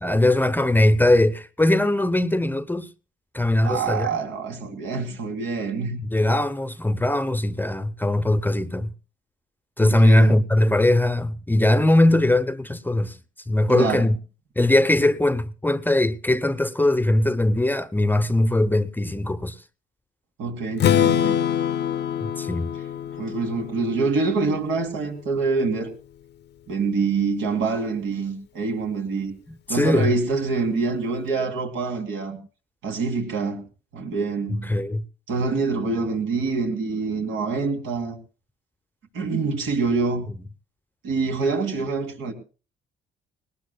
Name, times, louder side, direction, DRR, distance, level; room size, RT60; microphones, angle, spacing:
voice 1, 0.0-2.9 3.3-4.2 6.0-8.9 9.8-13.2 13.5-14.1 14.6-19.6 22.2-22.7 29.5-30.1 34.5-35.0, left 1 dB, 10° left, 0.7 m, -20 dB
voice 2, 3.6-6.0 9.8-10.3 13.7-14.0 20.4-21.4 23.2-25.9 26.7-29.3 29.7-32.4 32.8-33.6 33.9-34.7 35.3-38.2 39.1-40.3 41.0-42.3, right 4 dB, 85° right, 3.0 m, -25 dB
Strum, 20.8-24.7, left 9 dB, 60° left, 0.7 m, -24 dB
20.0 x 19.0 x 2.2 m
cardioid pair, 90°, 20 cm